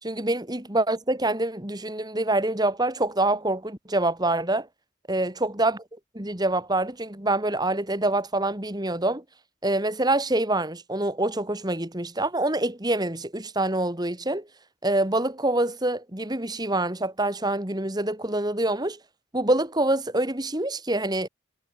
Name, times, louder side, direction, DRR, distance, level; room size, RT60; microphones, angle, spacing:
voice 1, 0.0-4.7 5.1-5.8 6.1-9.2 9.6-14.5 14.8-19.0 19.3-21.3, right 2 dB, 20° right, 2.5 m, -26 dB
head